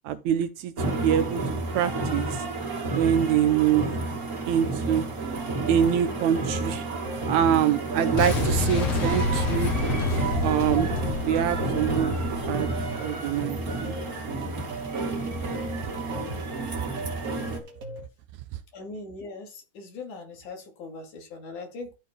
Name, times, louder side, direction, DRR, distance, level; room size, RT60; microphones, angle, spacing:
voice 1, 0.0-1.4 1.7-2.4 2.9-3.9 4.5-5.1 5.7-6.8 7.3-9.7 10.4-10.9 11.3-12.2 12.5-12.7 12.9-13.6 13.8-14.0, right 9 dB, 80° right, 1.9 m, -24 dB
sound 1, 0.8-17.6, right 2 dB, 30° right, 2.1 m, -30 dB
sound 2, 4.9-18.1, right 2 dB, 55° right, 0.9 m, -41 dB
Boom, 8.2-13.1, left 3 dB, 55° left, 2.7 m, -29 dB
voice 2, 18.7-21.9, left 3 dB, 75° left, 3.7 m, -40 dB
12.5 x 4.5 x 4.3 m
omnidirectional pair, 3.6 m